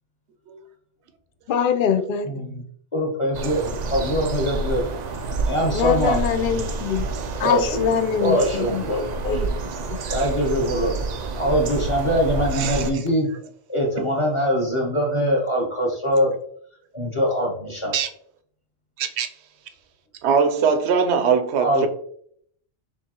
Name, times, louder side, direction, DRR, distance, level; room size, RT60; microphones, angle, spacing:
voice 1, 1.5-2.3 5.7-7.1 7.4-8.8 9.2-9.5 9.9-10.0, left 8 dB, 60° left, 0.6 m, -23 dB
voice 2, 2.2-2.6 2.9-4.8 5.5-6.3 7.4-9.0 9.3-9.4 10.1-10.9 11.4-13.3 13.7-16.3 16.9-17.9 21.6-21.9, equal, 25° left, 1.0 m, -23 dB
sound 1, 3.3-12.9, right 3 dB, 85° right, 0.3 m, -28 dB
voice 3, 12.5-12.9 17.9-18.1 19.0-19.3 20.2-21.9, right 6 dB, 65° right, 0.8 m, -21 dB
6.6 x 2.7 x 2.9 m
omnidirectional pair, 1.3 m